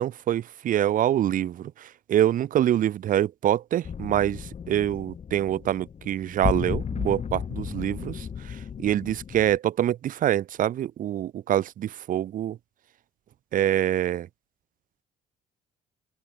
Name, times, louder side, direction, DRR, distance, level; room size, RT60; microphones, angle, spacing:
voice 1, 0.0-8.6 8.8-12.6 13.5-14.3, right 11 dB, 55° right, 0.9 m, -25 dB
sound 1, 3.8-9.6, left 7 dB, 40° left, 2.0 m, -34 dB
open air
cardioid pair, 110°, 17 cm